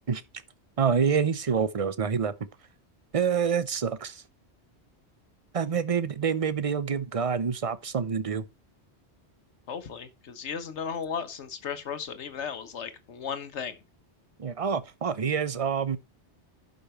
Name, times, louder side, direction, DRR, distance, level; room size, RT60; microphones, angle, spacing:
voice 1, 0.8-2.3 3.1-4.2 5.5-8.5 14.4-16.0, right 6 dB, 35° right, 0.7 m, -27 dB
voice 2, 9.7-13.8, left 6 dB, 85° left, 1.3 m, -35 dB
11.5 x 5.3 x 4.3 m
omnidirectional pair, 1.1 m